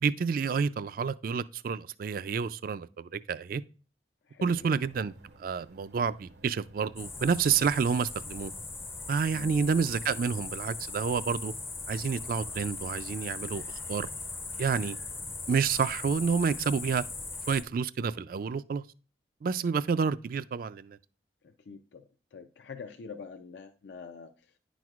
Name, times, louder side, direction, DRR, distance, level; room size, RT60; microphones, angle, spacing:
voice 1, 0.0-3.6 4.4-5.1 5.4-8.5 9.1-11.5 11.9-14.1 14.6-15.0 15.5-17.0 17.5-18.8 19.4-21.0, right 6 dB, 50° right, 0.3 m, -29 dB
voice 2, 4.3-4.7 9.3-9.6 21.4-22.0 22.3-24.3, left 5 dB, 75° left, 0.5 m, -45 dB
sound 1, 4.4-17.7, right 2 dB, 70° right, 0.7 m, -55 dB
sound 2, 7.0-17.6, left 3 dB, 15° left, 0.5 m, -39 dB
9.9 x 6.0 x 2.4 m
head